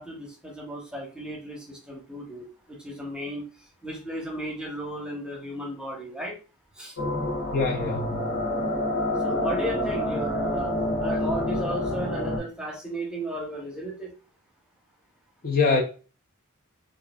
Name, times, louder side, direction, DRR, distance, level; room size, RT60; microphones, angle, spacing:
voice 1, 0.0-3.4 3.8-6.4 6.8-7.0 9.2-10.7 11.0-14.1, right 1 dB, 5° right, 0.8 m, -34 dB
sound 1, 7.0-12.4, left 1 dB, 60° left, 1.5 m, -28 dB
voice 2, 7.5-8.3 15.4-15.8, left 4 dB, 40° left, 0.5 m, -24 dB
4.5 x 2.5 x 2.3 m
head